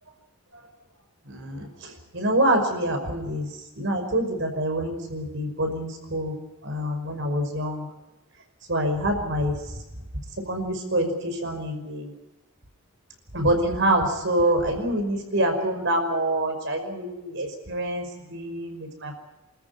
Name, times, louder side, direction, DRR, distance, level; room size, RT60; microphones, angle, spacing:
voice 1, 1.3-3.5 3.8-6.4 6.6-7.9 8.7-9.6 10.5-12.1 13.3-19.1, right 1 dB, 55° right, 5 dB, 5.4 m, -26 dB
27.5 x 14.0 x 9.6 m, 1.0 s
head